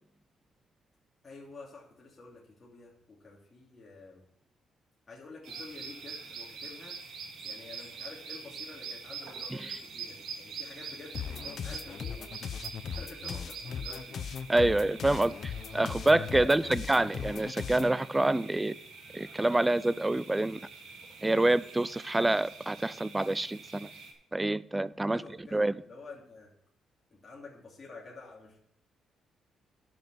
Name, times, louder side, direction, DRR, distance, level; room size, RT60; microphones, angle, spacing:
voice 1, 1.2-4.2 5.1-7.0 7.4-12.3 12.6-14.2 16.4-16.8 25.1-26.5 27.1-28.6, left 3 dB, 30° left, 2.9 m, -49 dB
sound 1, 5.4-24.1, right 5 dB, 75° right, 2.4 m, -45 dB
sound 2, 11.1-18.0, left 7 dB, 60° left, 0.6 m, -38 dB
voice 2, 14.5-18.8 19.1-20.6 21.2-23.9 24.3-25.2 25.5-25.7, right 2 dB, 15° right, 0.4 m, -27 dB
10.0 x 6.2 x 6.8 m
cardioid pair, 90°, 0 cm